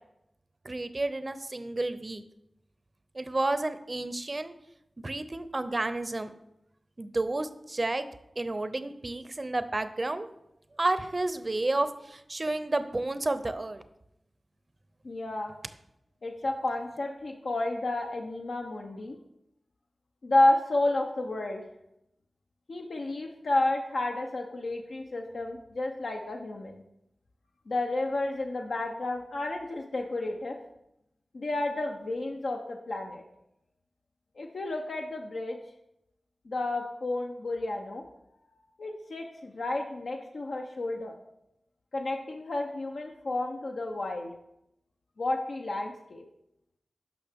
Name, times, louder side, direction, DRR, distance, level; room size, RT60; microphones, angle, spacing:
voice 1, 0.6-2.2 3.2-4.5 5.0-6.3 7.0-8.1 8.4-10.3 10.8-13.8, right 2 dB, 35° right, 11 dB, 0.6 m, -31 dB
voice 2, 15.0-15.5 16.2-19.2 20.2-21.6 22.7-26.8 27.7-30.6 31.3-33.2 34.4-35.6 36.5-38.0 38.8-41.1 41.9-44.3 45.2-46.2, left 2 dB, 75° left, 2 dB, 0.7 m, -31 dB
12.0 x 5.7 x 3.5 m, 0.84 s
wide cardioid pair, 75°, 0 cm